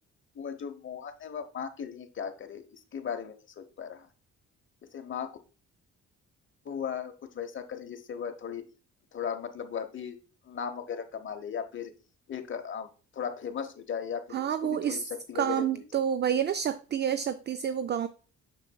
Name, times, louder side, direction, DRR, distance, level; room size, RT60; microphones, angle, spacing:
voice 1, 0.3-4.1 4.8-5.4 6.6-8.6 9.1-10.2 10.4-11.9 12.3-12.9 13.1-16.0, left 7 dB, 40° left, 0.9 m, -37 dB
voice 2, 14.3-15.0 15.3-18.1, right 9 dB, 35° right, 0.4 m, -28 dB
6.5 x 6.4 x 2.3 m
cardioid pair, 90°, 30 cm